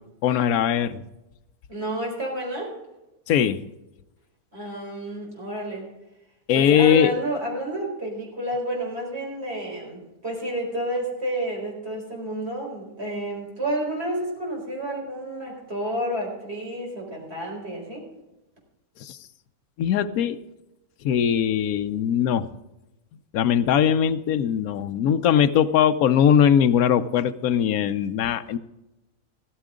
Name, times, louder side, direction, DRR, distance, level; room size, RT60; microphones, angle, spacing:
voice 1, 0.2-1.0 3.3-3.7 6.5-7.1 19.0-19.2 19.8-20.4 21.0-22.5 23.3-28.6, left 9 dB, 85° left, 10 dB, 1.2 m, -20 dB
voice 2, 1.7-2.7 4.5-5.9 6.5-18.0, right 1 dB, 45° right, -1 dB, 4.6 m, -30 dB
15.0 x 14.5 x 3.7 m, 0.97 s
omnidirectional pair, 1.5 m